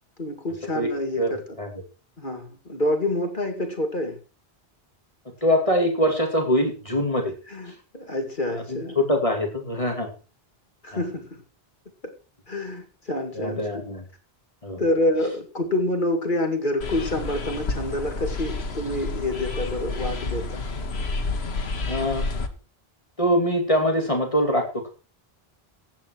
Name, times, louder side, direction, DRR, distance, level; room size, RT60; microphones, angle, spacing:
voice 1, 0.2-1.4 2.2-4.2 7.5-9.0 10.8-11.4 12.5-13.8 14.8-20.6, left 1 dB, 50° left, 5 dB, 2.5 m, -27 dB
voice 2, 1.2-1.7 5.4-7.3 7.7-7.8 8.7-10.1 10.9-11.0 13.3-14.0 14.6-14.8 21.9-22.3 23.2-24.9, equal, 35° left, 3 dB, 2.7 m, -23 dB
sound 1, 16.8-22.5, left 3 dB, 85° left, 1.6 m, -30 dB
14.5 x 9.2 x 4.6 m, 0.34 s
omnidirectional pair, 1.0 m